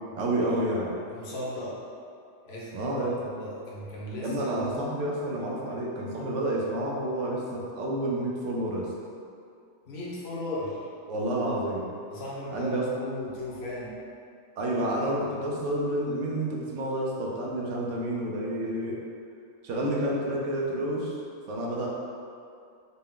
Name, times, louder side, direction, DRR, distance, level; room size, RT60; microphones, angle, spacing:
voice 1, 0.2-0.9 2.7-3.2 4.2-8.9 11.1-11.9 12.5-12.9 14.6-19.0 19.6-21.2 21.5-21.9, right 1 dB, 75° right, -3 dB, 1.0 m, -29 dB
voice 2, 1.1-1.8 2.4-4.7 9.8-10.9 12.1-13.9, left 1 dB, 60° left, -6 dB, 1.0 m, -37 dB
4.0 x 2.2 x 3.6 m, 2.4 s
omnidirectional pair, 1.3 m